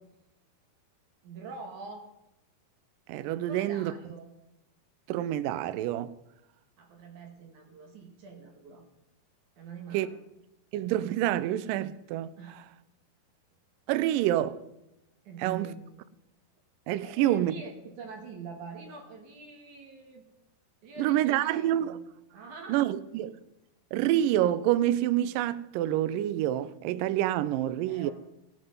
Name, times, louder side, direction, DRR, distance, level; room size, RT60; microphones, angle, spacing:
voice 1, 1.2-2.1 3.4-4.3 6.8-8.8 9.6-10.2 12.4-12.6 15.2-15.9 17.0-20.2 20.8-22.0 22.3-22.8 27.9-28.1, right 4 dB, 60° right, 2.6 m, -44 dB
voice 2, 3.1-3.9 5.1-6.1 9.9-10.1 10.7-12.3 13.9-14.6 15.4-15.7 16.9-17.5 21.0-21.9 22.7-23.4 23.9-28.1, right 13 dB, 90° right, 1.9 m, -27 dB
17.0 x 7.7 x 5.4 m
omnidirectional pair, 4.6 m